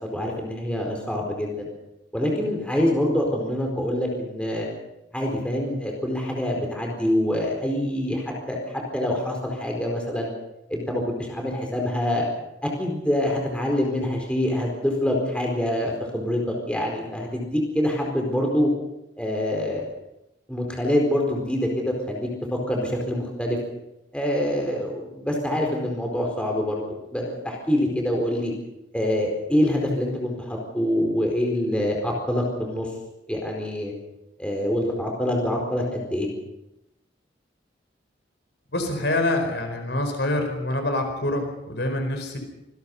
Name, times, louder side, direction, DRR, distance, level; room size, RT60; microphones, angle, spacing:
voice 1, 0.0-1.7 2.1-4.7 5.1-8.6 8.9-10.3 10.7-12.2 12.6-18.7 19.2-19.8 20.5-23.6 24.1-26.8 27.1-28.5 28.9-32.9 33.3-33.9 34.4-36.3, left 1 dB, 5° left, 0 dB, 4.5 m, -25 dB
voice 2, 38.7-42.4, left 1 dB, 70° left, 5 dB, 4.6 m, -26 dB
26.0 x 20.0 x 5.5 m, 0.88 s
head